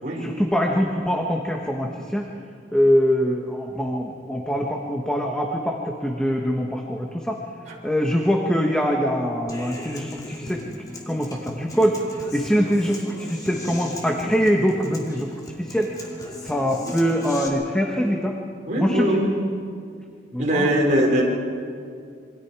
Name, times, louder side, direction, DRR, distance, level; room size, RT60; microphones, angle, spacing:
voice 1, 0.2-2.2 2.7-7.4 7.8-10.6 11.1-12.0 12.3-15.9 16.4-18.3 18.8-19.2 20.3-20.7, equal, 5° left, 0 dB, 1.4 m, -23 dB
Human voice / Acoustic guitar, 9.5-17.5, left 1 dB, 20° left, 2.6 m, -38 dB
voice 2, 18.7-19.3 20.4-21.2, right 1 dB, 40° right, -3 dB, 4.6 m, -21 dB
27.0 x 24.5 x 4.9 m, 2.3 s
head